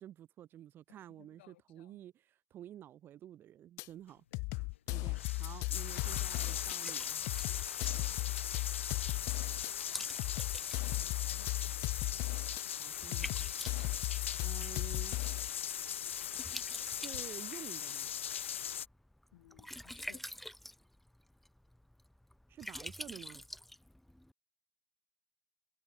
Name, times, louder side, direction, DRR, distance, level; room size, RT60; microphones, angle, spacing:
voice 1, 0.0-4.2 4.9-7.2 12.8-13.5 14.4-15.2 16.9-18.1 22.5-23.4, right 11 dB, 35° right, 7.9 m, -51 dB
voice 2, 1.2-2.0 4.3-4.8 5.5-5.9 7.9-9.3 10.0-10.3 10.8-11.7 19.3-20.2, left 16 dB, 65° left, 7.9 m, -62 dB
sound 1, 3.8-3.9 4.3-6.8 7.3-9.7 10.2-12.6 13.1-15.5, left 27 dB, 50° left, 0.8 m, -37 dB
sound 2, 4.5-4.6 5.0-18.9, left 9 dB, 90° left, 0.5 m, -39 dB
Liquid, 5.3-24.3, left 1 dB, ahead, 3.8 m, -50 dB
hypercardioid pair, 110°, 7 cm